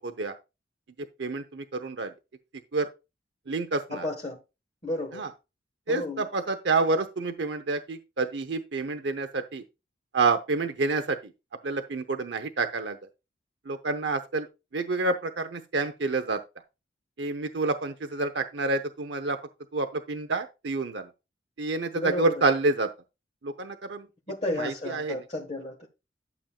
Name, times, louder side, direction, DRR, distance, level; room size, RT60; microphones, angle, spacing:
voice 1, 0.0-0.4 1.2-2.1 2.7-2.9 3.5-4.1 5.1-5.3 5.9-9.6 10.1-11.3 11.6-13.0 13.7-14.5 14.7-16.4 17.2-19.4 19.7-21.1 21.6-22.9 23.4-24.1 24.5-25.2, right 3 dB, 75° right, 0.8 m, -28 dB
voice 2, 3.9-4.4 4.8-5.2 5.9-6.2 21.9-22.3 24.3-25.8, left 1 dB, 35° left, 1.4 m, -32 dB
12.0 x 7.2 x 2.3 m
head